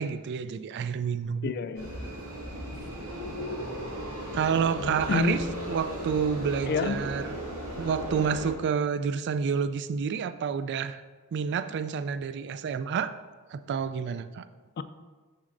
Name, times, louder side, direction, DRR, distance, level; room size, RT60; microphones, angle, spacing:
voice 1, 0.0-1.5 4.3-5.4 5.7-7.4 7.8-11.0 11.3-13.1 13.5-14.4, right 6 dB, 50° right, 12 dB, 0.3 m, -29 dB
voice 2, 1.4-1.9 2.7-2.9 3.2-3.3 4.8-5.6 6.7-7.0 14.8-14.9, left 4 dB, 50° left, 11 dB, 0.3 m, -29 dB
sound 1, 1.7-8.5, equal, 85° right, 2.2 m, -36 dB
12.0 x 4.1 x 2.5 m, 1.3 s
head